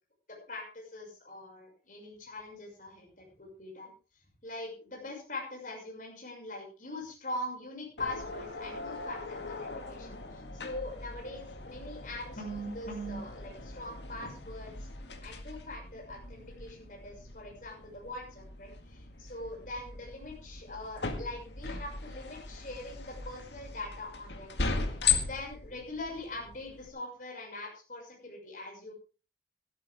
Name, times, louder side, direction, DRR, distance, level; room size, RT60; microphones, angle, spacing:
voice 1, 0.5-3.9 4.4-14.7 15.2-24.6 25.2-28.9, left 1 dB, 50° left, -1 dB, 6.4 m, -42 dB
sound 1, 8.0-26.9, left 5 dB, 80° left, 2.0 m, -38 dB
16.5 x 12.5 x 3.6 m, 0.35 s
head